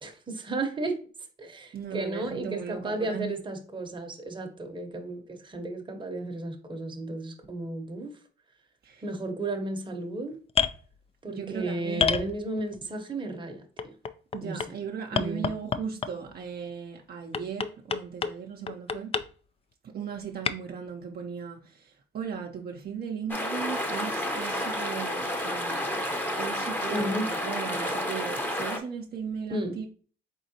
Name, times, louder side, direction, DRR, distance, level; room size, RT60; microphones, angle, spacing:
voice 1, 0.0-1.0 1.4-8.1 9.0-10.3 11.2-13.9 14.4-14.6 15.1-15.5 26.9-27.3 29.5-29.8, right 2 dB, 25° right, 0.8 m, -33 dB
voice 2, 1.7-3.3 8.8-9.0 11.3-12.1 14.3-19.1 19.8-26.1 26.4-29.9, right 7 dB, 50° right, 0.6 m, -37 dB
sound 1, 10.5-10.8 12.0-12.8 13.8-14.7 15.2-16.3 17.3-18.4 18.7-19.3 20.5-20.6, left 6 dB, 30° left, 0.3 m, -27 dB
sound 2, 23.3-28.8, equal, 10° left, 0.8 m, -30 dB
4.0 x 3.7 x 2.8 m
cardioid pair, 90°, 20 cm